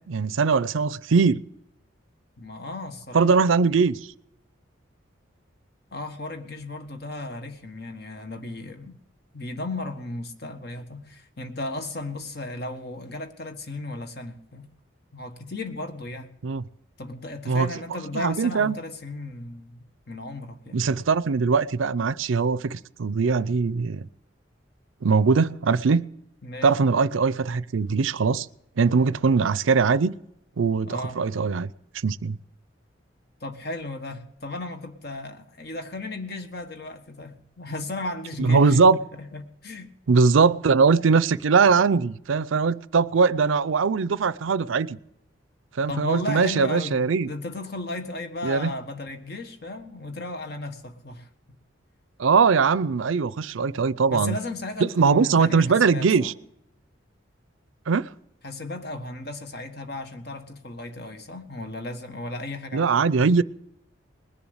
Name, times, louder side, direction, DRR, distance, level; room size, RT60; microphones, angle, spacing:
voice 1, 0.1-1.4 3.1-4.0 16.4-16.6 17.5-17.7 18.1-18.8 20.7-24.1 25.0-26.0 26.6-28.5 28.8-30.1 30.6-31.7 32.0-32.4 38.4-39.0 40.1-45.0 45.8-47.3 48.4-48.7 52.2-54.4 54.8-56.3 57.9-58.1 62.7-63.4, right 5 dB, 80° right, 0.5 m, -21 dB
voice 2, 2.4-3.4 5.9-9.0 9.3-14.7 15.1-16.3 17.0-20.8 26.4-26.8 30.9-31.2 33.4-38.8 39.2-39.9 45.9-51.3 54.1-56.3 58.4-63.0, left 2 dB, 55° left, 1.5 m, -35 dB
20.5 x 7.1 x 8.0 m
head